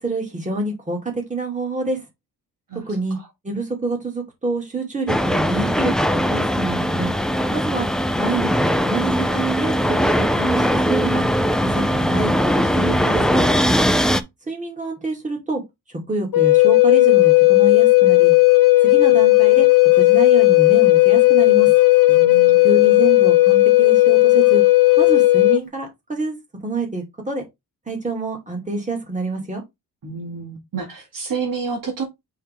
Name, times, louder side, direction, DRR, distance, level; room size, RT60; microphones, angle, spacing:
voice 1, 0.0-2.1 2.9-3.2 3.4-7.1 7.5-7.9 8.2-11.3 11.6-13.5 14.5-15.6 16.1-18.3 18.8-19.7 20.0-21.7 22.6-24.6 25.0-26.4 26.6-27.4 27.9-29.6, right 2 dB, 20° right, 2.7 m, -27 dB
sound 1, 5.1-14.2, equal, ahead, 0.5 m, -20 dB
Wind instrument woodwind instrument, 16.3-25.6, left 20 dB, 60° left, 0.8 m, -13 dB
voice 2, 22.1-23.1 30.0-32.0, right 5 dB, 60° right, 2.1 m, -30 dB
5.7 x 4.6 x 3.6 m
wide cardioid pair, 120°, 38 cm